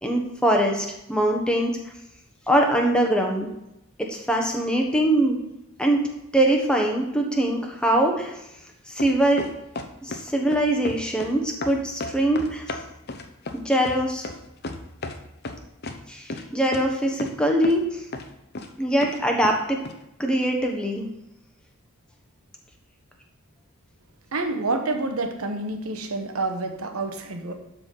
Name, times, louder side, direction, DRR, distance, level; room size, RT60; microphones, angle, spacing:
voice 1, 0.0-1.7 2.5-3.5 4.1-5.4 5.8-6.0 6.3-8.3 8.9-9.4 10.0-12.6 13.5-14.2 16.1-18.0 18.8-19.8 20.2-21.0, right 1 dB, 5° left, 1 dB, 1.2 m, -22 dB
sound 1, 9.0-10.2 10.5-11.3 11.6-15.2 15.4-16.0 16.3-16.4 16.7-16.8 17.2-17.4 17.6-17.8 18.1-18.7 19.0-19.6 19.8-19.9, left 2 dB, 50° left, 0.8 m, -33 dB
voice 2, 24.3-27.5, right 2 dB, 85° right, 6 dB, 1.2 m, -28 dB
12.5 x 4.2 x 5.6 m, 0.88 s
head